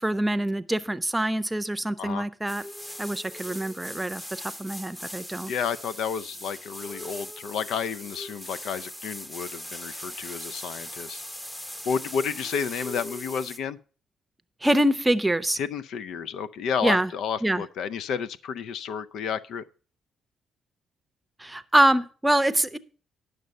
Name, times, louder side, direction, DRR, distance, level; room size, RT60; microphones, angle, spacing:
voice 1, 0.0-2.6 3.0-5.5 14.6-15.6 16.8-17.1 17.4-17.6 21.4-22.8, right 1 dB, 10° right, 0.7 m, -25 dB
sound 1, 2.5-13.6, equal, 15° left, 1.1 m, -40 dB
voice 2, 5.5-11.2 11.9-13.8 15.6-19.7, left 7 dB, 75° left, 0.5 m, -31 dB
11.0 x 6.6 x 5.2 m
cardioid pair, 90°, 0 cm